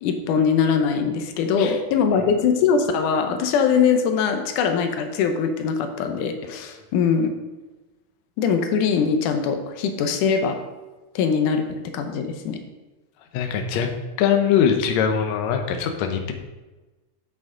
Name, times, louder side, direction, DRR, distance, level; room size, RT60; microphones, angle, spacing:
voice 1, 0.0-7.3 8.4-10.6 11.2-11.7 11.9-12.6, left 6 dB, 90° left, 6 dB, 2.4 m, -22 dB
voice 2, 13.3-13.9 14.2-16.3, left 8 dB, 70° left, 5 dB, 2.0 m, -22 dB
9.5 x 7.7 x 3.8 m, 1.2 s
omnidirectional pair, 3.5 m